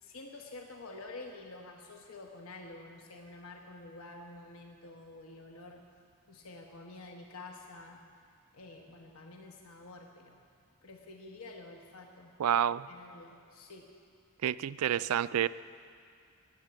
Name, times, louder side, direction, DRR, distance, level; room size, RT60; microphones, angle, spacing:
voice 1, 0.0-5.8 6.3-8.0 8.5-10.4 10.8-12.3 12.9-13.9, left 2 dB, 70° left, 2 dB, 1.1 m, -49 dB
voice 2, 12.4-12.9 14.4-15.5, right 10 dB, 80° right, 16 dB, 0.4 m, -28 dB
20.0 x 8.2 x 7.7 m, 2.3 s
head